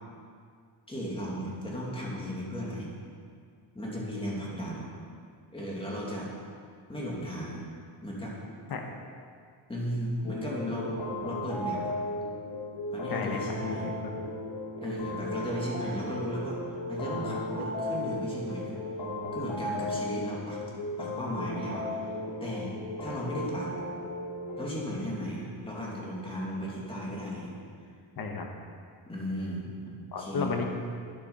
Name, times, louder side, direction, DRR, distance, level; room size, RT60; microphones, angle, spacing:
voice 1, 0.9-2.9 3.7-4.9 5.5-6.3 6.9-7.6 8.0-8.4 9.7-11.9 12.9-13.9 14.8-16.6 16.9-18.8 19.3-20.6 21.0-22.7 23.0-23.8 24.6-27.5 29.1-30.5, equal, 10° left, -4 dB, 2.6 m, -35 dB
sound 1, 10.2-24.7, left 1 dB, 65° left, 2.7 m, -36 dB
voice 2, 13.1-14.1 28.2-28.5 30.1-30.6, left 4 dB, 50° left, 2 dB, 1.4 m, -33 dB
12.5 x 10.0 x 5.6 m, 2.2 s
cardioid pair, 160°, 47 cm